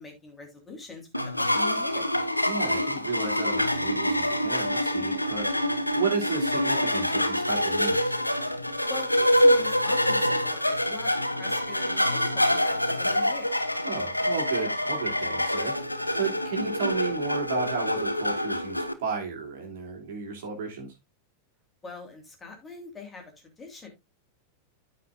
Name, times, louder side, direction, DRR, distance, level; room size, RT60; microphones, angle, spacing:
voice 1, 0.0-2.1 8.9-11.1 11.4-13.6 21.8-23.3 23.6-23.9, left 4 dB, 15° left, 3.2 m, -43 dB
sound 1, 1.1-18.9, left 1 dB, 85° left, 0.7 m, -26 dB
voice 2, 2.4-8.1 13.8-20.9, right 5 dB, 55° right, 2.9 m, -33 dB
13.5 x 5.1 x 2.5 m
figure-of-eight pair, 90°, 0 cm